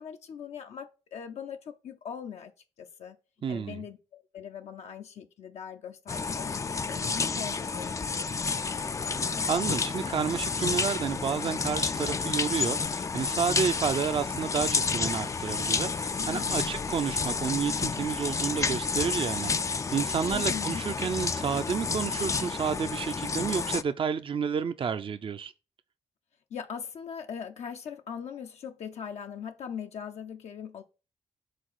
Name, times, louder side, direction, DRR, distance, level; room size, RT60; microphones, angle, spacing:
voice 1, 0.0-2.5 2.8-3.2 3.5-9.0 13.5-13.8 16.2-16.9 20.2-20.9 26.5-30.8, left 7 dB, 70° left, 0.6 m, -41 dB
voice 2, 3.4-3.8 9.3-25.5, right 6 dB, 50° right, 0.5 m, -30 dB
sound 1, 6.1-23.8, left 4 dB, 25° left, 0.3 m, -30 dB
5.1 x 3.6 x 5.5 m
supercardioid pair, 55°, 12 cm